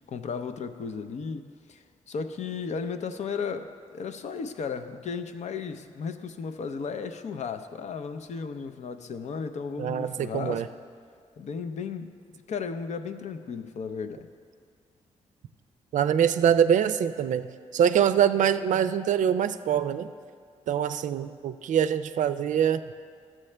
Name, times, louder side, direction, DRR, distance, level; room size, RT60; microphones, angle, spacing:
voice 1, 0.0-10.7 11.4-12.2 12.5-14.3, left 5 dB, 65° left, 8 dB, 0.6 m, -35 dB
voice 2, 9.8-10.7 15.9-17.5 17.7-20.1 20.7-22.8, right 9 dB, 70° right, 12 dB, 0.4 m, -24 dB
13.0 x 7.5 x 3.3 m, 2.1 s
cardioid pair, 70°, 13 cm